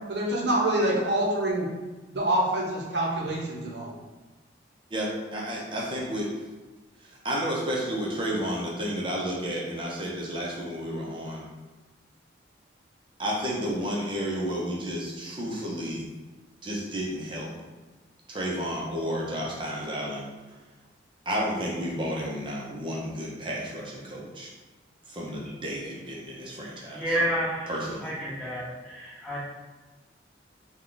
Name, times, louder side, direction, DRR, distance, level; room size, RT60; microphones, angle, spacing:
voice 1, 0.1-1.7 2.1-3.9, right 1 dB, 60° right, -3 dB, 0.8 m, -26 dB
voice 2, 4.9-6.3 7.0-11.4 13.2-16.0 16.6-17.5 18.3-20.2 21.3-24.5 25.1-27.2 27.7-28.1, equal, 25° right, -3 dB, 0.7 m, -31 dB
voice 3, 26.9-27.7 28.0-29.4, equal, 5° left, -9 dB, 1.0 m, -29 dB
3.5 x 2.3 x 3.8 m, 1.2 s
head